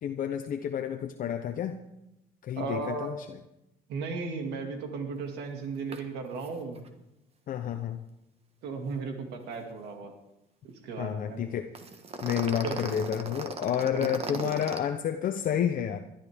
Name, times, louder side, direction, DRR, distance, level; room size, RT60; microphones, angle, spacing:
voice 1, 0.0-1.8 2.4-3.4 7.5-8.0 11.0-11.7 12.2-16.0, left 9 dB, 55° left, 6 dB, 0.9 m, -30 dB
voice 2, 2.6-3.1 3.9-6.8 8.6-10.1 10.6-11.4 12.6-12.8 13.9-14.5, right 4 dB, 80° right, 4 dB, 2.3 m, -35 dB
sound 1, 5.9-6.0 6.3-6.5 6.7-6.9 11.7-14.8, right 4 dB, 35° right, 1.5 m, -37 dB
20.5 x 12.0 x 3.6 m, 0.89 s
cardioid pair, 110°, 17 cm